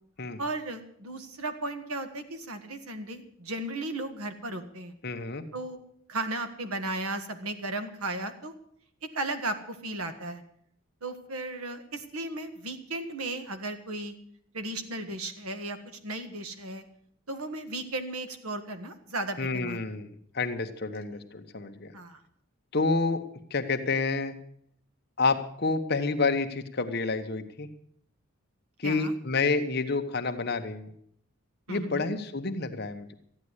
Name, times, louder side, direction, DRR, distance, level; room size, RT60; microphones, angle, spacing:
voice 1, 0.4-4.9 5.5-5.8 6.1-8.5 9.1-10.4 11.0-14.2 14.5-16.8 17.3-19.8 21.9-22.2 28.8-29.1 31.7-32.1, right 2 dB, 90° right, 8 dB, 1.6 m, -35 dB
voice 2, 5.0-5.4 19.4-21.9 22.7-23.2 23.5-24.4 25.2-27.7 28.8-30.9 31.7-33.1, left 3 dB, 50° left, 7 dB, 1.1 m, -29 dB
13.5 x 9.8 x 8.1 m, 0.67 s
head